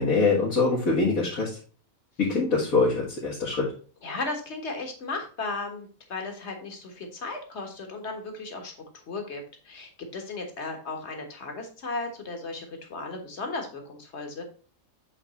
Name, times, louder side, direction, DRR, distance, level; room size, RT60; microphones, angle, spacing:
voice 1, 0.0-1.6 2.2-3.7, left 3 dB, 80° left, -6 dB, 2.3 m, -24 dB
voice 2, 4.0-14.4, left 3 dB, 55° left, 4 dB, 1.7 m, -35 dB
7.9 x 3.6 x 4.2 m, 0.40 s
omnidirectional pair, 1.4 m